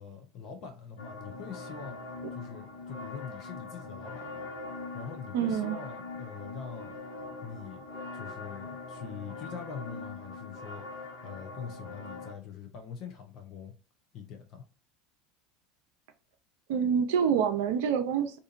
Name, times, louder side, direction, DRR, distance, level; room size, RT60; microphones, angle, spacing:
voice 1, 0.0-2.0 2.3-4.3 4.7-6.9 7.4-7.8 8.1-10.8 11.2-13.7 14.1-14.6, left 7 dB, 50° left, 0.6 m, -43 dB
sound 1, 1.0-12.3, left 3 dB, 70° left, 1.1 m, -42 dB
voice 2, 5.3-5.8 16.7-18.4, right 7 dB, 65° right, 0.4 m, -27 dB
2.7 x 2.5 x 2.5 m
figure-of-eight pair, 75°, 0 cm